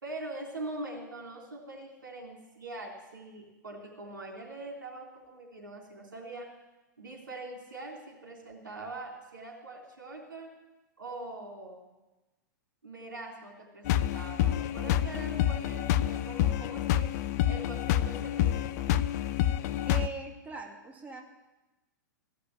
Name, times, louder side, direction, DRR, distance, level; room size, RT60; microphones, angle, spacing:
voice 1, 0.0-6.5 7.0-10.5 11.0-11.9 12.8-17.1 17.5-19.0, right 2 dB, 90° right, 0 dB, 3.5 m, -43 dB
sound 1, 13.9-20.1, left 11 dB, 50° left, 0.6 m, -28 dB
voice 2, 19.9-21.2, right 4 dB, 15° right, 1 dB, 2.3 m, -40 dB
15.5 x 6.7 x 9.8 m, 1.1 s
hypercardioid pair, 110°, 11 cm